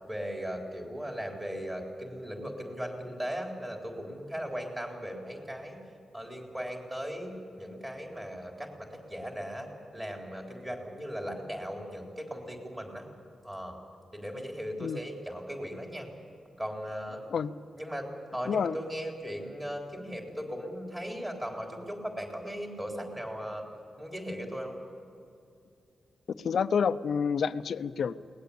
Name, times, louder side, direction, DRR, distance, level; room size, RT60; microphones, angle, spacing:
voice 1, 0.1-5.8 6.1-13.0 13.4-13.8 14.1-16.1 16.6-17.2 17.7-23.6 24.0-24.7, equal, 15° right, 1 dB, 3.7 m, -38 dB
voice 2, 18.5-18.8 26.3-28.1, left 6 dB, 55° left, 13 dB, 0.6 m, -28 dB
22.0 x 19.5 x 8.5 m, 2.5 s
wide cardioid pair, 170°, 0 cm